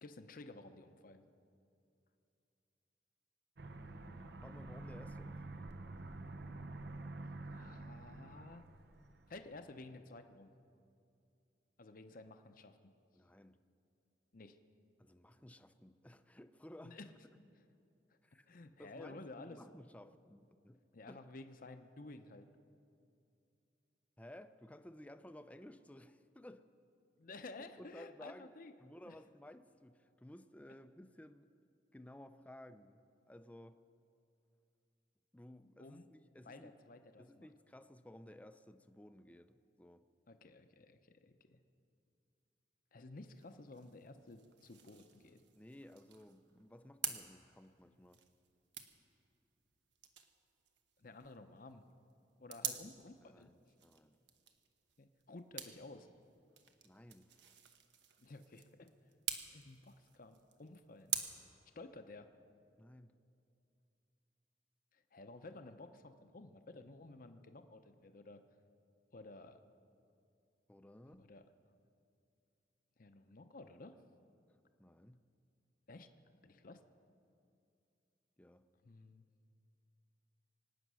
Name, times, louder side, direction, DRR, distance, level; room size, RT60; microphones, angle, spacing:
voice 1, 0.0-1.2 7.5-8.6 9.3-10.5 11.8-12.8 14.3-14.6 16.8-17.1 18.5-19.6 20.9-22.5 27.2-28.7 29.1-29.2 35.8-36.1 36.4-37.5 40.3-41.6 42.9-45.4 51.0-51.9 52.4-53.5 55.0-56.1 58.2-58.9 59.5-61.1 61.8-62.3 64.9-68.4 69.1-69.6 71.1-71.4 73.0-74.0 75.9-76.1 76.4-76.8 78.8-79.3, left 2 dB, 50° left, 8 dB, 0.7 m, -53 dB
Aircraft, 3.6-9.7, right 2 dB, 65° right, 0.7 m, -48 dB
voice 2, 3.7-5.7 13.1-13.6 15.0-17.0 18.2-18.5 18.8-20.8 21.1-21.2 24.2-26.7 27.8-28.5 28.8-31.5 31.9-33.8 35.3-36.7 37.2-40.1 45.5-48.2 52.6-52.9 53.2-54.2 56.8-57.5 62.8-63.1 70.7-71.3 74.8-75.2 78.4-78.6, left 1 dB, 10° left, 10 dB, 0.5 m, -56 dB
sound 1, 43.1-61.2, right 9 dB, 85° right, 1.1 m, -48 dB
24.0 x 9.1 x 6.3 m, 2.6 s
head